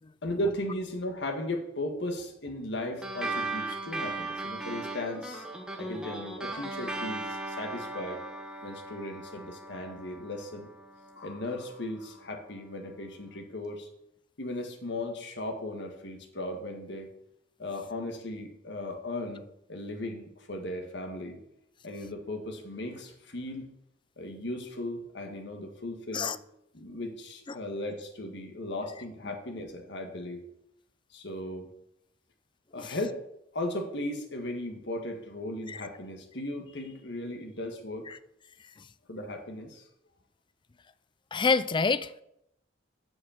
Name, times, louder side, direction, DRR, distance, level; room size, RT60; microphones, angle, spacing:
voice 1, 0.2-5.4 5.8-8.2 8.6-10.7 11.1-13.9 14.4-17.1 17.6-19.4 19.7-21.4 21.8-23.7 24.2-26.3 26.7-30.4 31.1-31.7 32.7-33.2 33.5-38.1 39.1-39.9, left 1 dB, 65° left, 1.7 m, -36 dB
sound 1, 3.0-11.8, right 2 dB, 5° right, 1.3 m, -38 dB
voice 2, 41.3-42.2, left 4 dB, 25° left, 0.4 m, -29 dB
7.6 x 6.4 x 7.3 m
head